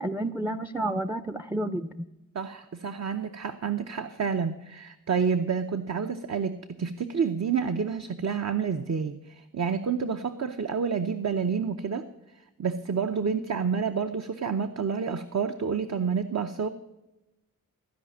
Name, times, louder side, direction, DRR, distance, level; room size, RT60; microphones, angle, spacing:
voice 1, 0.0-2.0, right 1 dB, 5° right, 12 dB, 0.5 m, -30 dB
voice 2, 2.3-12.0 12.6-16.7, right 6 dB, 50° right, 7 dB, 0.7 m, -29 dB
15.0 x 5.1 x 7.2 m, 0.97 s
cardioid pair, 55°, 34 cm